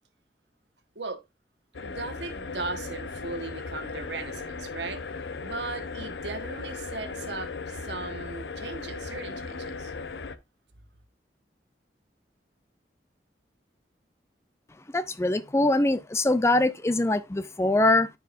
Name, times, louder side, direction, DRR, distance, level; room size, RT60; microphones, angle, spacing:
sound 1, 1.7-10.4, left 4 dB, 85° left, 0.7 m, -37 dB
voice 1, 1.8-5.0 5.4-9.9, right 3 dB, 80° right, 1.3 m, -37 dB
voice 2, 14.9-18.1, left 2 dB, 15° left, 0.4 m, -23 dB
13.0 x 4.7 x 2.5 m
head